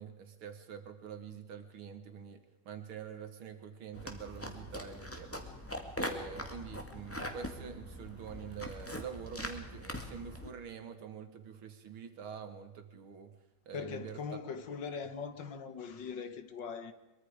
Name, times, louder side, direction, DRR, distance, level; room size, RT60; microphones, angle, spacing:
voice 1, 0.0-5.5 6.0-13.3 13.7-14.2, right 7 dB, 80° right, 2.6 m, -46 dB
sound 1, 3.9-10.5, equal, 5° left, 2.0 m, -42 dB
voice 2, 13.7-16.9, left 6 dB, 65° left, 1.9 m, -41 dB
23.5 x 23.0 x 5.0 m
omnidirectional pair, 2.3 m